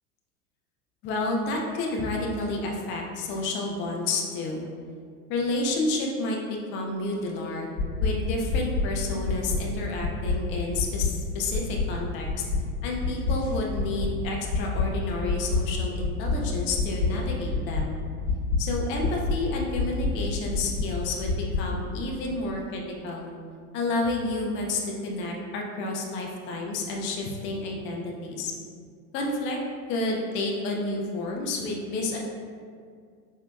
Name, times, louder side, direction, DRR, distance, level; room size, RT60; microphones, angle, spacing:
voice 1, 1.0-4.6 5.3-7.7 8.0-12.3 12.8-18.0 18.6-23.3 23.7-28.5 29.1-29.6 29.9-32.2, left 2 dB, 25° left, 0 dB, 0.4 m, -30 dB
sound 1, 7.8-8.1 8.5-8.8 9.3-9.6 10.0-10.4 10.8-11.1 11.5-11.8 12.3-12.6 13.0-13.3 13.8-14.1 14.5-14.8 15.3-15.6 16.0-16.3 16.8-17.1 17.5-17.8 18.3-18.6 19.0-19.4 19.8-20.1 20.5-20.9 21.3-21.6, left 4 dB, 70° left, 0.7 m, -25 dB
4.3 x 2.7 x 2.2 m, 2.1 s
hypercardioid pair, 95°, 46 cm